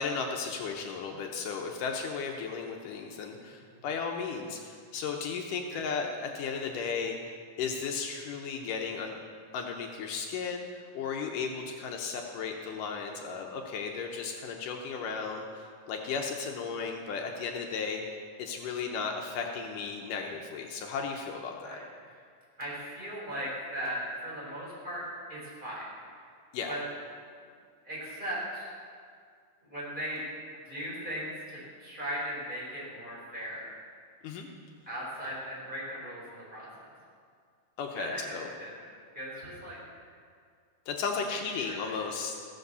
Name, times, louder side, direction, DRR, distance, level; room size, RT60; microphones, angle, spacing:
voice 1, 0.0-7.2 7.6-9.2 9.5-18.0 18.4-21.8 26.5-26.8 34.2-34.5 37.8-38.5 40.9-42.4, left 5 dB, 75° left, 2 dB, 2.4 m, -35 dB
voice 2, 22.6-25.0 25.3-25.9 26.7-26.8 27.8-28.7 29.6-30.2 30.6-33.7 34.9-36.9 37.9-38.9 39.1-39.8 41.3-41.9, equal, 15° right, -7 dB, 4.3 m, -38 dB
15.5 x 7.6 x 6.8 m, 2.1 s
omnidirectional pair, 3.8 m